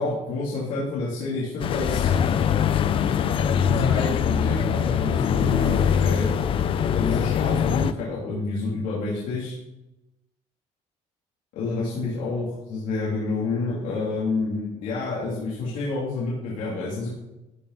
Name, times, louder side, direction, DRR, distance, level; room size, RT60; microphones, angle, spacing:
voice 1, 0.0-2.1 3.5-6.3 6.9-9.6 11.5-17.1, left 3 dB, 80° left, -6 dB, 3.3 m, -29 dB
sound 1, 1.6-7.9, left 8 dB, 45° left, 0.6 m, -22 dB
13.5 x 9.1 x 4.2 m, 0.97 s
cardioid pair, 155°, 13 cm